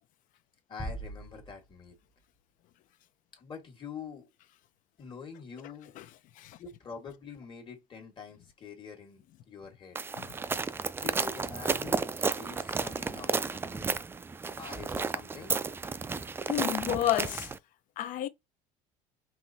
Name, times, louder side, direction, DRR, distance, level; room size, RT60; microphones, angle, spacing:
voice 1, 0.7-2.0 3.4-4.3 5.0-5.9 6.6-10.0 11.0-14.0 14.6-15.5, left 6 dB, 30° left, 1.5 m, -46 dB
sound 1, 0.8-2.4, right 1 dB, 10° left, 0.9 m, -42 dB
sound 2, 10.0-17.6, right 4 dB, 15° right, 0.3 m, -32 dB
voice 2, 16.5-17.5 18.0-18.3, left 13 dB, 55° left, 0.6 m, -30 dB
5.6 x 3.1 x 2.7 m
cardioid pair, 130°, 16 cm